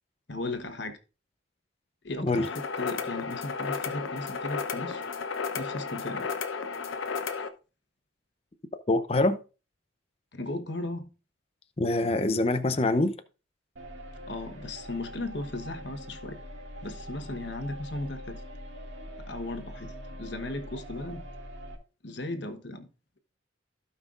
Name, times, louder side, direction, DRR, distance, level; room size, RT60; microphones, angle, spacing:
voice 1, 0.3-1.0 2.0-5.1 5.5-6.3 10.3-11.1 14.3-16.4 16.8-18.4 19.2-21.2 22.0-22.9, left 2 dB, 60° left, 1.2 m, -36 dB
sound 1, 2.3-7.5, left 5 dB, 80° left, 0.9 m, -33 dB
voice 2, 8.9-9.4 11.8-13.1, left 2 dB, 30° left, 0.6 m, -24 dB
sound 2, 13.8-21.8, equal, 65° right, 2.2 m, -43 dB
16.0 x 5.6 x 2.5 m
head